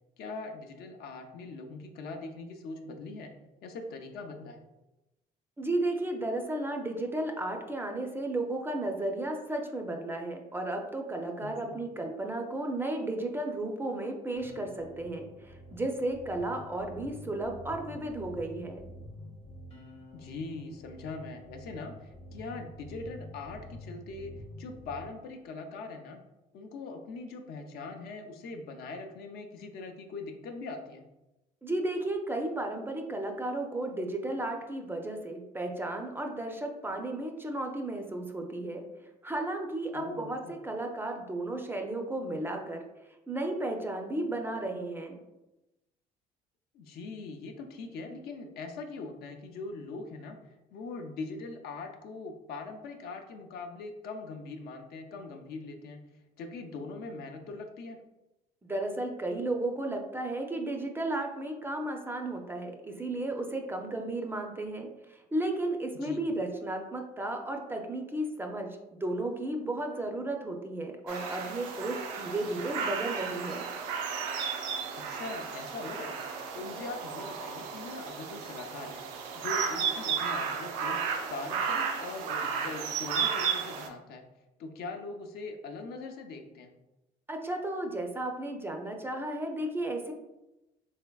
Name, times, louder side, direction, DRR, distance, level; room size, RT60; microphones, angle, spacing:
voice 1, 0.2-3.3 3.6-4.6 11.4-11.8 20.1-24.3 24.6-26.2 26.5-31.1 39.9-40.5 46.7-56.0 56.4-58.0 66.0-66.2 72.6-72.7 75.0-76.2 76.5-79.0 79.3-81.0 81.3-84.2 84.6-86.7, left 3 dB, 70° left, 4 dB, 0.5 m, -41 dB
voice 2, 5.6-18.8 31.6-38.8 39.2-42.8 43.3-45.2 58.6-68.7 69.0-73.7 87.3-90.1, right 2 dB, 15° right, 3 dB, 0.4 m, -34 dB
sound 1, 14.4-25.0, left 1 dB, 35° left, 0.7 m, -48 dB
sound 2, 71.1-83.9, right 6 dB, 90° right, 0.5 m, -34 dB
3.4 x 3.3 x 2.2 m, 0.98 s
cardioid pair, 95°, 17 cm